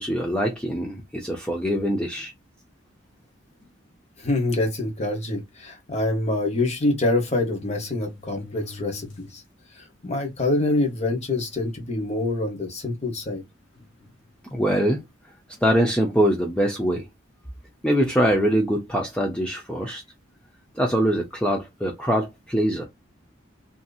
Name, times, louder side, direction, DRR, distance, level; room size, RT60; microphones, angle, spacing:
voice 1, 0.0-2.3 14.5-15.0 15.6-17.1 17.8-20.0 20.8-22.9, equal, 5° left, 0.5 m, -23 dB
sound 1, 3.6-3.9 4.6-4.7 5.0-5.1 6.4-6.5 7.2-9.5 9.9-10.0 10.8-10.9 11.3-11.7 12.3-12.5 13.7-14.6 15.5-15.8, left 3 dB, 75° left, 1.5 m, -45 dB
voice 2, 4.2-9.4 9.8-13.4, left 2 dB, 35° left, 1.1 m, -26 dB
2.8 x 2.6 x 2.3 m
head